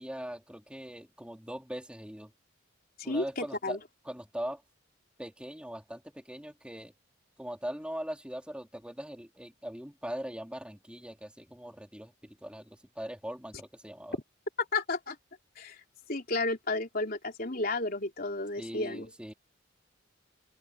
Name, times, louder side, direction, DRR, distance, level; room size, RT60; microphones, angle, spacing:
voice 1, 0.0-2.3 3.0-3.8 4.1-4.6 5.2-6.9 7.4-14.2 18.6-19.3, equal, 5° right, 3.6 m, -41 dB
voice 2, 3.0-3.8 14.6-15.2 15.6-15.8 16.1-19.1, left 3 dB, 45° left, 4.0 m, -32 dB
open air
head